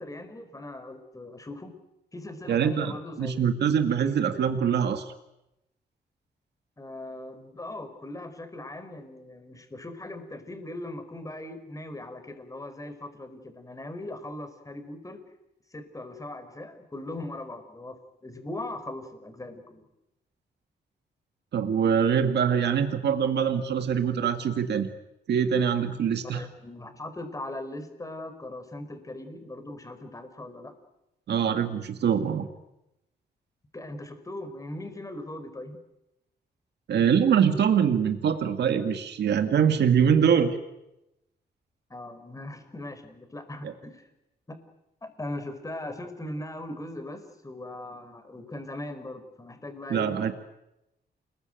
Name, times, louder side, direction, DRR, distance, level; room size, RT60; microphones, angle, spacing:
voice 1, 0.0-1.7 2.1-3.4 4.0-4.2 6.8-15.2 15.7-19.8 26.3-30.8 33.7-35.8 41.9-44.1 44.5-44.6 45.0-50.1, left 1 dB, 20° left, 8 dB, 4.9 m, -39 dB
voice 2, 2.5-2.9 3.2-5.1 21.5-24.9 25.3-26.4 31.3-32.5 36.9-40.6 43.6-43.7 49.9-50.3, right 7 dB, 75° right, 7 dB, 2.1 m, -24 dB
29.0 x 21.5 x 9.3 m, 0.91 s
cardioid pair, 120°, 17 cm